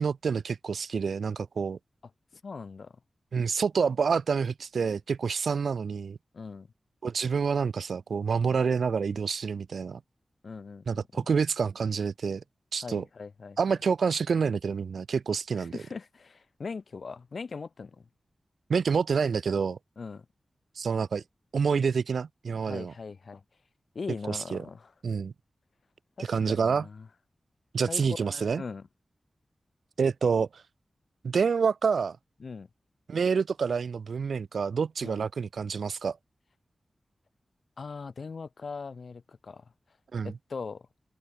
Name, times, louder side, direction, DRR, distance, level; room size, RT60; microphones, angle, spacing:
voice 1, 0.0-1.8 3.3-6.2 7.0-10.0 10.9-12.4 12.7-13.0 13.6-15.8 18.7-19.8 20.8-21.2 21.5-22.9 24.3-24.6 25.0-25.3 26.2-26.9 27.7-28.6 30.0-30.5 31.2-32.2 33.1-36.2 40.1-40.3, right 5 dB, 80° right, 0.3 m, -27 dB
voice 2, 2.4-2.9 6.3-6.7 10.4-11.0 12.8-13.6 15.6-18.0 20.0-20.2 22.6-23.4 23.9-24.9 26.2-27.1 27.9-28.9 32.4-32.7 35.0-35.3 37.8-39.6 40.2-40.9, left 4 dB, 70° left, 0.7 m, -40 dB
cardioid pair, 40°, 0 cm